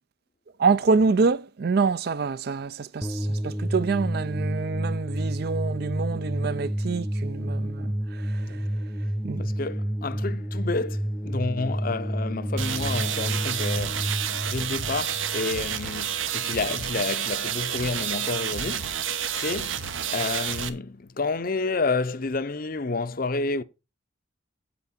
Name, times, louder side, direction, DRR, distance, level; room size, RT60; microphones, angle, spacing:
voice 1, 0.6-8.6 9.2-9.4, right 4 dB, 50° right, 0.4 m, -26 dB
sound 1, 3.0-16.1, equal, 5° left, 0.8 m, -30 dB
voice 2, 9.4-14.1 14.5-19.9 20.1-23.6, left 3 dB, 45° left, 0.6 m, -30 dB
sound 2, 12.6-20.7, right 9 dB, 80° right, 1.0 m, -30 dB
8.4 x 8.2 x 4.3 m
head